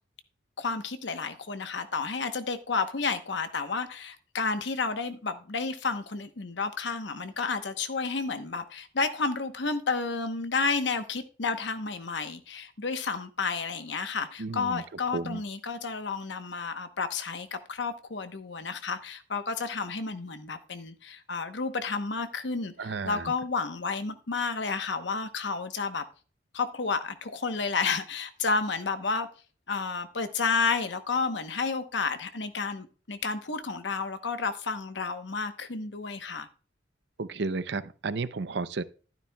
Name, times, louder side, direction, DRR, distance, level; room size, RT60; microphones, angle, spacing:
voice 1, 0.6-26.0 26.5-29.3 29.7-36.5, left 4 dB, 70° left, 1.0 m, -31 dB
voice 2, 14.4-14.8 15.1-15.4 22.8-23.3 37.2-38.8, right 3 dB, 65° right, 0.6 m, -32 dB
12.5 x 10.5 x 2.3 m
head